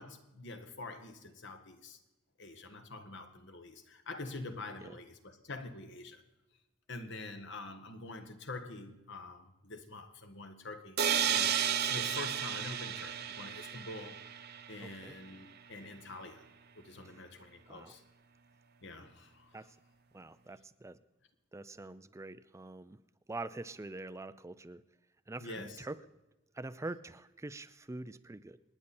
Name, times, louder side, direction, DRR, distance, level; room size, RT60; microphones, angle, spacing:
voice 1, 0.0-2.0 2.4-6.2 6.9-11.0 11.3-11.5 11.8-14.2 14.7-16.5 16.7-18.0 18.8-19.5 25.4-25.8, left 2 dB, 65° left, 1.6 m, -46 dB
sound 1, 11.0-14.8, right 9 dB, 55° right, 0.8 m, -33 dB
voice 2, 14.8-15.2 17.0-17.2 17.7-18.0 19.5-19.8 20.1-21.0 21.5-23.0 23.3-24.8 25.3-26.0 26.5-28.6, right 2 dB, 15° right, 0.4 m, -45 dB
27.5 x 10.0 x 4.3 m
head